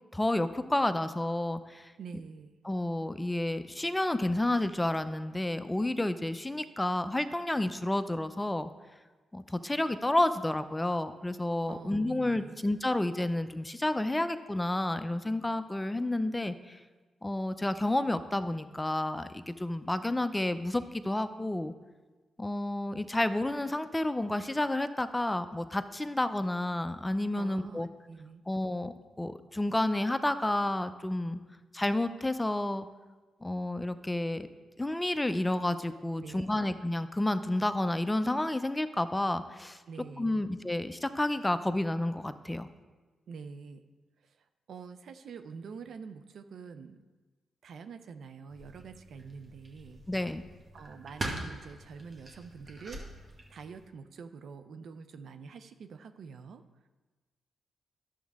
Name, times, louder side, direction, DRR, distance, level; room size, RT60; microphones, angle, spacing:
voice 1, 0.1-1.9 2.6-8.7 9.3-16.8 17.2-21.7 22.4-27.9 28.5-31.4 31.7-32.9 33.4-34.5 34.8-39.8 40.2-42.7 50.1-50.4, left 1 dB, 15° left, 11 dB, 0.5 m, -30 dB
voice 2, 2.0-2.5 11.7-12.6 27.4-28.4 36.2-36.7 39.9-40.5 43.3-43.8 44.7-47.0 47.6-50.0 50.7-53.1 53.5-56.6, right 5 dB, 70° right, 9 dB, 0.5 m, -46 dB
sound 1, 48.5-53.9, right 2 dB, 45° right, 1.7 m, -43 dB
11.0 x 7.2 x 3.6 m, 1.3 s
supercardioid pair, 55°, 0 cm